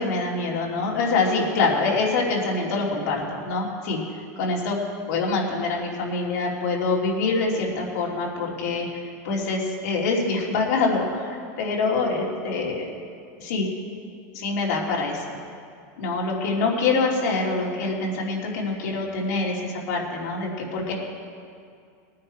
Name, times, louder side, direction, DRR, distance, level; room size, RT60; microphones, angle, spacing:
voice 1, 0.0-4.0 4.4-4.8 5.1-8.9 9.2-12.8 13.4-13.7 14.3-15.4 16.0-20.9, left 3 dB, 75° left, -2 dB, 3.1 m, -25 dB
19.0 x 9.6 x 4.5 m, 2.3 s
supercardioid pair, 140°, 9 cm